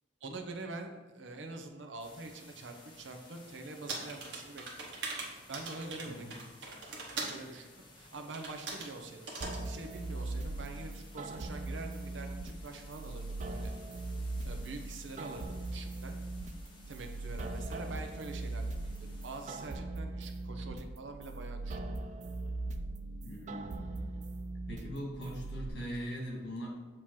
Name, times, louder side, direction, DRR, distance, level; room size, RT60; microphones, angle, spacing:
voice 1, 0.2-4.9 5.5-9.3 9.6-13.7 14.4-16.2 16.9-21.8, right 2 dB, 90° right, 5 dB, 0.7 m, -45 dB
sound 1, 2.0-19.7, left 2 dB, 25° left, 1.2 m, -57 dB
sound 2, 3.9-7.4 8.3-8.9 9.3-9.6, right 3 dB, 70° right, 1.2 m, -41 dB
sound 3, 9.4-25.7, right 2 dB, 40° right, 0.4 m, -40 dB
voice 2, 23.2-23.9 24.7-26.7, equal, 65° left, -3 dB, 2.0 m, -40 dB
7.5 x 3.0 x 4.7 m, 1.3 s
head